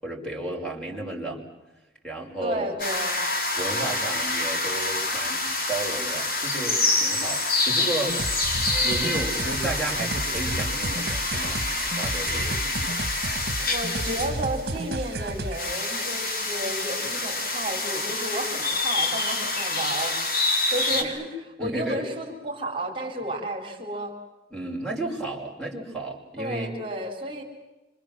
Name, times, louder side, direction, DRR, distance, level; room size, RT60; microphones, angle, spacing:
voice 1, 0.0-1.5 2.0-2.7 3.6-11.6 11.9-12.6 20.9-21.1 21.6-22.0 24.5-26.7, right 2 dB, 5° left, -1 dB, 5.5 m, -33 dB
voice 2, 2.4-3.2 13.6-20.2 20.5-24.1 26.4-27.4, right 1 dB, 30° right, 0 dB, 3.9 m, -32 dB
sound 1, 2.8-21.0, left 2 dB, 55° left, 3.3 m, -27 dB
sound 2, 8.1-15.6, right 2 dB, 60° right, 1.4 m, -32 dB
27.0 x 26.0 x 7.5 m, 1.1 s
head